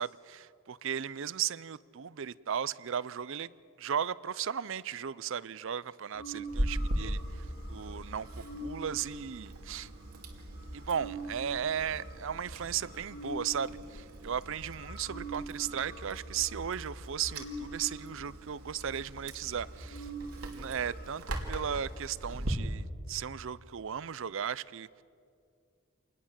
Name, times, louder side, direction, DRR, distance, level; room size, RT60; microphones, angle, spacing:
voice 1, 0.0-3.5 3.8-9.9 10.7-20.1 20.5-25.0, right 8 dB, 60° right, 0.5 m, -36 dB
sound 1, 6.1-13.6 14.2-14.3 14.5-21.9, right 1 dB, 45° left, 5.9 m, -45 dB
Chewing mastication, 6.5-22.5, right 1 dB, 85° right, 2.8 m, -41 dB
26.5 x 20.0 x 7.4 m
head